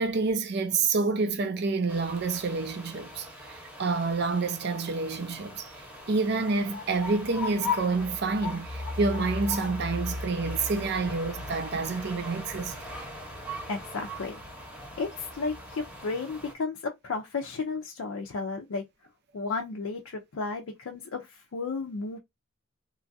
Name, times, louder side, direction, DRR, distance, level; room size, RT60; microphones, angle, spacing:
voice 1, 0.0-5.7 6.1-12.7, right 4 dB, 55° right, 0.5 m, -28 dB
sound 1, 1.9-16.5, left 2 dB, 5° right, 0.8 m, -38 dB
voice 2, 13.7-14.4 15.0-18.8 19.3-22.2, left 4 dB, 80° left, 0.5 m, -33 dB
3.1 x 2.3 x 2.5 m
head